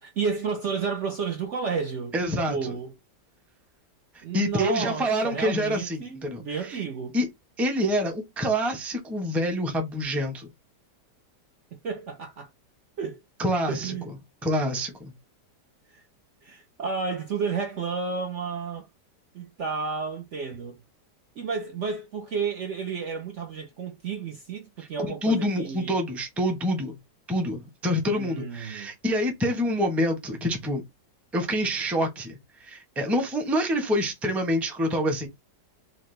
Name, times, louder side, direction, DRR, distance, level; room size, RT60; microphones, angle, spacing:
voice 1, 0.0-2.1 2.5-2.9 4.2-7.2 11.8-12.5 13.0-13.2 13.7-14.1 15.9-16.0 16.4-18.9 19.3-20.8 21.4-25.9 28.1-28.9, right 5 dB, 55° right, 0.9 m, -31 dB
voice 2, 2.1-2.7 4.1-6.8 7.1-7.3 7.6-10.5 13.4-13.9 14.4-15.1 25.2-26.9 27.3-30.8 31.3-35.3, equal, ahead, 0.7 m, -27 dB
4.2 x 2.6 x 3.2 m
omnidirectional pair, 1.8 m